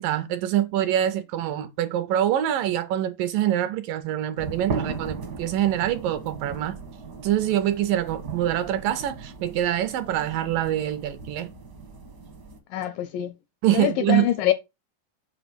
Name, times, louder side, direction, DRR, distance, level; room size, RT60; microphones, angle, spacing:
voice 1, 0.0-6.8 7.2-11.5 13.6-14.3, right 12 dB, 80° right, 2.1 m, -25 dB
sound 1, 4.4-12.6, right 5 dB, 65° right, 1.0 m, -37 dB
voice 2, 12.7-13.4 13.7-14.5, left 12 dB, 80° left, 2.0 m, -24 dB
8.1 x 5.6 x 6.1 m
omnidirectional pair, 4.5 m